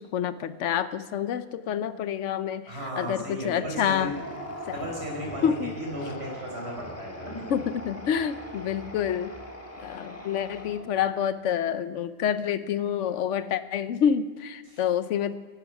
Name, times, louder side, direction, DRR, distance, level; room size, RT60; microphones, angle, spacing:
voice 1, 0.0-4.2 4.7-4.8 5.4-5.7 7.5-9.3 9.8-15.3, left 8 dB, 85° left, 13 dB, 1.0 m, -28 dB
voice 2, 2.7-4.1 4.7-7.4 9.8-9.9 14.7-14.8, equal, 60° right, -1 dB, 5.4 m, -35 dB
sound 1, 3.9-11.1, equal, 10° left, 1.6 m, -41 dB
15.0 x 12.0 x 6.0 m, 1.5 s
omnidirectional pair, 1.2 m